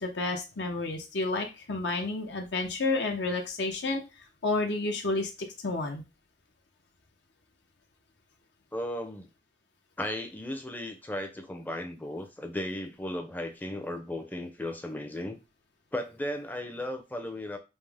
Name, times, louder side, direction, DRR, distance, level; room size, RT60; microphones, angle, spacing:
voice 1, 0.0-4.0 4.4-5.3 5.6-6.0, left 3 dB, 70° left, 3 dB, 0.8 m, -30 dB
voice 2, 8.7-9.3 10.0-15.4 15.9-17.6, left 1 dB, 10° left, 5 dB, 0.5 m, -35 dB
5.3 x 2.1 x 3.4 m, 0.27 s
head